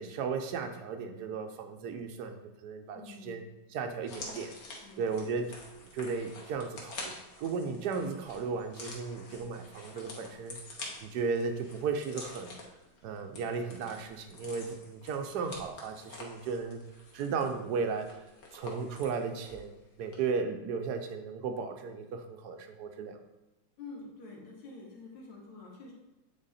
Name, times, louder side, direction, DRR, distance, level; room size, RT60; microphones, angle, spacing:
voice 1, 0.0-3.4 3.7-4.5 5.0-5.5 5.9-7.1 7.4-10.6 11.0-12.6 13.0-16.8 17.1-18.1 18.5-23.2, right 5 dB, 70° right, 7 dB, 1.0 m, -35 dB
voice 2, 2.9-3.6 4.8-5.1 23.8-25.9, left 3 dB, 80° left, -3 dB, 2.5 m, -48 dB
sound 1, 4.0-19.7 20.0-20.1, left 2 dB, 50° left, 1.5 m, -47 dB
8.9 x 4.0 x 4.1 m, 1.0 s
omnidirectional pair, 2.3 m